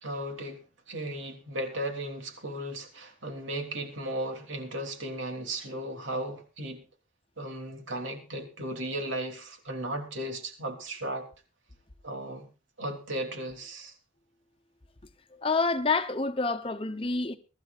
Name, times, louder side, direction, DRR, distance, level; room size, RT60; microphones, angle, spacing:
voice 1, 0.0-6.8 7.4-11.3 12.0-12.5 12.8-13.9, right 1 dB, 90° right, 3.3 m, -36 dB
voice 2, 15.4-17.4, left 3 dB, 30° left, 0.9 m, -27 dB
23.5 x 12.5 x 2.5 m
head